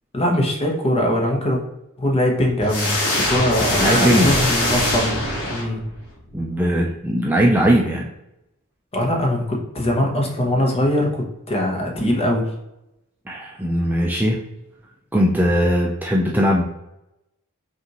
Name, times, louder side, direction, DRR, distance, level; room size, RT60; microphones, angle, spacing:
voice 1, 0.1-1.6 2.0-5.8 8.9-12.5, left 1 dB, 25° left, 1 dB, 0.8 m, -21 dB
sound 1, 2.7-6.1, left 1 dB, 85° left, 1.4 m, -22 dB
voice 2, 3.8-4.4 6.3-8.1 13.3-14.4 15.1-16.6, equal, 10° right, -2 dB, 0.3 m, -19 dB
5.3 x 2.5 x 2.9 m, 0.88 s
head